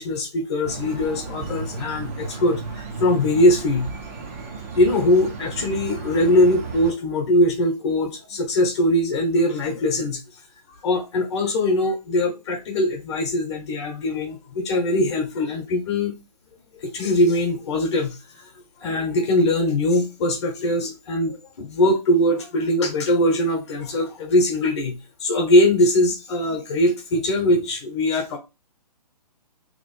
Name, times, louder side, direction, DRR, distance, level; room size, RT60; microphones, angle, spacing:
voice 1, 0.0-3.9 4.7-10.2 10.8-16.1 16.8-18.4 18.8-28.4, left 1 dB, 40° left, 0.9 m, -21 dB
sound 1, 0.6-6.9, right 4 dB, 20° right, 0.4 m, -34 dB
3.0 x 2.5 x 4.1 m
hypercardioid pair, 155°, 21 cm